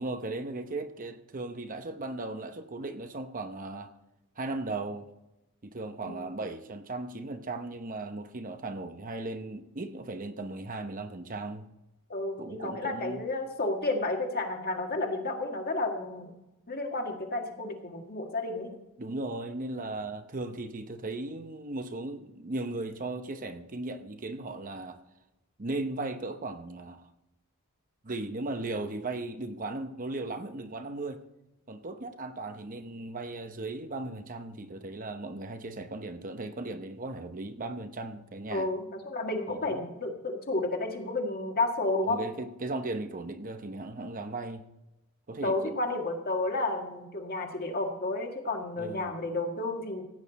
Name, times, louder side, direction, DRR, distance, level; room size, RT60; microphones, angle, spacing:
voice 1, 0.0-3.9 4.4-5.1 5.6-11.7 12.4-13.2 19.0-25.0 25.6-27.1 28.0-31.2 31.7-38.7 39.5-39.9 42.0-44.6 45.3-45.8 48.8-49.1, right 2 dB, 35° right, 8 dB, 0.8 m, -37 dB
voice 2, 12.1-16.4 16.7-18.7 38.5-42.2 45.4-50.0, left 2 dB, 45° left, 2 dB, 1.9 m, -31 dB
16.0 x 9.0 x 4.2 m, 0.93 s
head